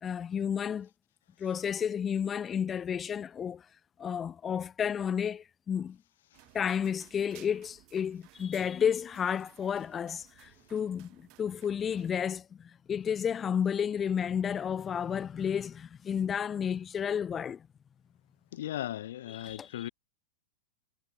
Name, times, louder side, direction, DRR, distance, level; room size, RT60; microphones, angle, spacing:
voice 1, 0.0-0.9 1.4-3.7 4.0-6.0 6.5-17.7 19.3-19.9, left 8 dB, 15° left, 0.8 m, -32 dB
sound 1, 6.3-12.1, right 26 dB, 35° right, 3.9 m, -59 dB
voice 2, 18.5-19.9, left 13 dB, 65° left, 0.7 m, -37 dB
supercardioid pair, 165°, 0 cm